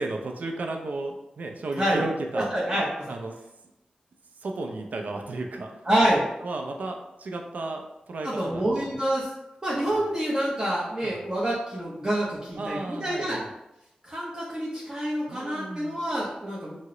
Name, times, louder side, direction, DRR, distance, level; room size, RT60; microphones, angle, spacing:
voice 1, 0.0-2.8 3.1-3.3 4.4-5.7 6.4-9.1 11.0-11.2 12.6-13.5 15.3-16.0, right 2 dB, 70° right, 3 dB, 0.4 m, -34 dB
voice 2, 2.3-3.1 5.8-6.2 8.2-9.3 9.6-13.4 14.0-16.8, right 1 dB, 25° right, -7 dB, 0.7 m, -27 dB
2.8 x 2.0 x 3.7 m, 0.91 s
cardioid pair, 50°, 3 cm